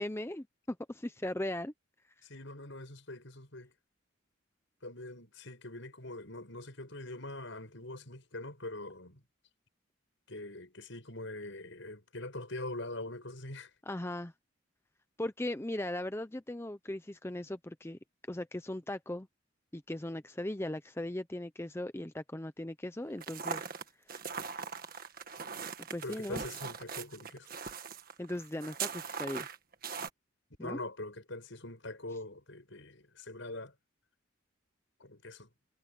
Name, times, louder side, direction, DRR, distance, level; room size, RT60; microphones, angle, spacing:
voice 1, 0.0-1.7 13.9-14.3 15.2-18.0 18.3-19.3 19.7-23.7 24.1-24.2 25.9-26.4 28.2-29.5 30.6-30.8, left 1 dB, 10° left, 0.6 m, -38 dB
voice 2, 2.2-3.7 4.8-9.2 10.3-13.7 26.0-27.5 30.6-33.7 35.0-35.5, left 2 dB, 70° left, 6.0 m, -43 dB
sound 1, 23.2-30.1, right 6 dB, 45° right, 1.7 m, -40 dB
head